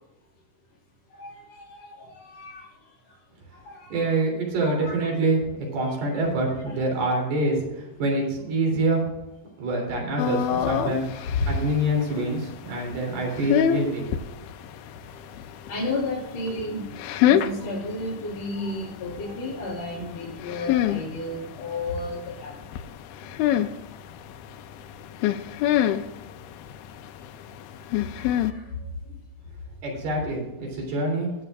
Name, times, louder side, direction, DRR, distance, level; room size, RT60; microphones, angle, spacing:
voice 1, 1.1-2.7 3.7-4.0 4.6-5.1 5.8-5.9 6.7-6.8 9.6-9.7 10.7-11.8 15.7-22.6 28.2-28.7 29.1-29.2 30.2-30.3, left 2 dB, 45° left, -7 dB, 3.7 m, -33 dB
voice 2, 3.9-5.4 5.7-9.1 9.6-14.1 29.8-31.3, right 2 dB, 75° right, -1 dB, 5.4 m, -26 dB
sound 1, 10.2-28.5, left 11 dB, 85° left, 2.4 m, -28 dB
21.0 x 7.7 x 2.5 m, 0.96 s
omnidirectional pair, 4.6 m